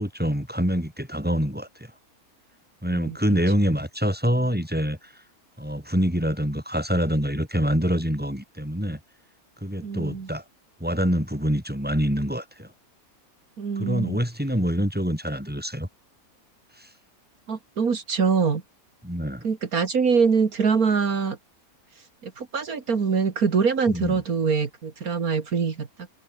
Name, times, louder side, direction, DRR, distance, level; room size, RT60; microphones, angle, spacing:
voice 1, 0.0-1.9 2.8-5.0 5.6-9.0 9.6-10.4 10.8-12.7 13.8-15.9 16.8-16.9 19.0-19.4 23.9-24.2, equal, 5° right, 7.6 m, -25 dB
voice 2, 9.8-10.3 13.6-14.2 17.5-18.6 19.4-21.4 22.2-25.9, right 5 dB, 75° right, 2.4 m, -24 dB
omnidirectional pair, 1.6 m